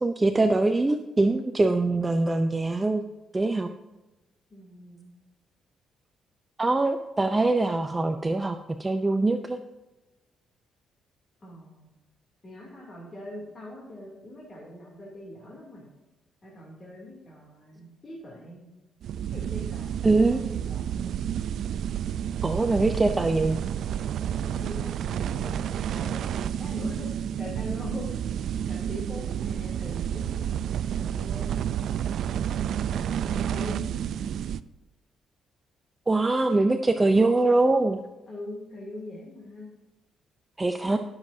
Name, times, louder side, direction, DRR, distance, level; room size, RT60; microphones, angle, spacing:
voice 1, 0.0-3.0 3.3-3.7 6.6-9.6 20.0-20.4 22.4-23.6 36.1-38.0 40.6-41.0, right 2 dB, 15° right, 7 dB, 0.5 m, -23 dB
voice 2, 4.5-5.1 11.4-11.9 12.4-15.9 16.4-18.8 19.3-21.1 24.3-27.1 27.4-28.1 28.5-32.0 32.9-34.3 38.3-39.7 40.8-41.0, left 1 dB, 30° left, -4 dB, 2.7 m, -42 dB
sound 1, 19.0-34.6, right 9 dB, 70° right, 0.3 m, -30 dB
18.0 x 7.2 x 2.7 m, 1.0 s
cardioid pair, 120°, 0 cm